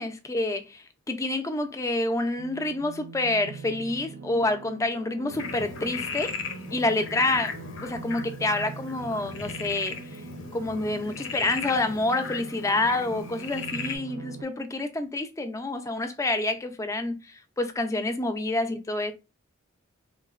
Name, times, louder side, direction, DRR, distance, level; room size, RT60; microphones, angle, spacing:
voice 1, 0.0-6.4 6.7-7.6 7.8-10.0 10.5-19.1, left 2 dB, 15° left, 0.3 m, -28 dB
sound 1, 2.4-14.4, right 4 dB, 70° right, 0.5 m, -43 dB
Frog, 5.3-14.0, left 5 dB, 80° left, 0.5 m, -37 dB
3.7 x 2.0 x 2.3 m
head